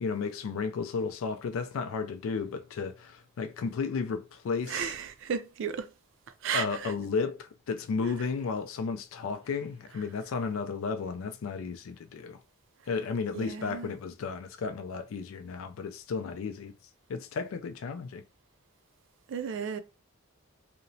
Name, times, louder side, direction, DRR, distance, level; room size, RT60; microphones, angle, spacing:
voice 1, 0.0-4.9 6.5-12.4 12.9-16.7 17.1-18.2, left 5 dB, 85° left, 0.4 m, -33 dB
voice 2, 4.7-5.9 6.4-6.9 13.3-13.9 19.3-19.8, right 7 dB, 65° right, 0.3 m, -34 dB
2.9 x 2.0 x 2.6 m
head